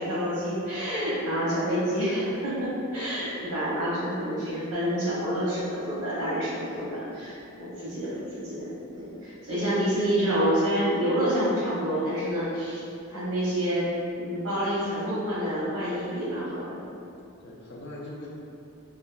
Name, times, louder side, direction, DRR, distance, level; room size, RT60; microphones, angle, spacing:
voice 1, 0.0-8.7 8.9-13.9 14.2-16.8, equal, 85° right, -9 dB, 0.8 m, -28 dB
voice 2, 1.4-1.8 17.4-18.3, left 1 dB, 50° left, -3 dB, 0.4 m, -42 dB
2.7 x 2.3 x 2.3 m, 2.6 s
head